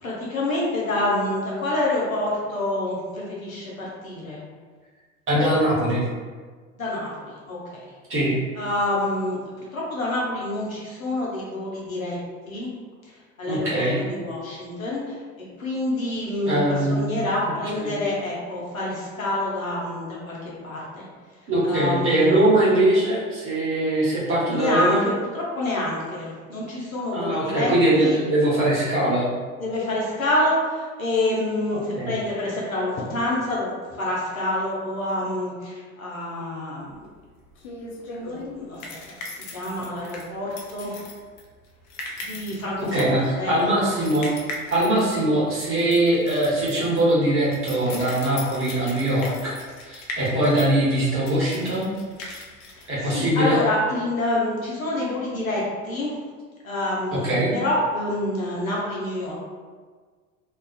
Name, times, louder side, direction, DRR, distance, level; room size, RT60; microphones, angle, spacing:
voice 1, 0.0-4.4 6.8-7.8 8.6-12.2 12.5-12.7 13.1-13.8 14.1-15.2 15.6-21.0 21.6-22.4 24.5-28.2 29.6-37.1 38.2-38.8 39.3-41.0 42.2-43.8 52.7-56.2 56.6-59.4, left 1 dB, 90° left, -5 dB, 0.7 m, -27 dB
voice 2, 5.3-6.0 8.1-8.4 13.5-14.0 16.5-17.1 17.4-18.0 21.5-25.0 27.1-29.3 31.7-32.1 42.9-49.5 49.8-51.9 52.9-53.6 57.1-57.5, right 1 dB, 30° right, -7 dB, 0.9 m, -22 dB
sound 1, 36.9-53.6, left 2 dB, 45° left, 0.5 m, -39 dB
2.4 x 2.2 x 2.3 m, 1.5 s
figure-of-eight pair, 70°, 40 cm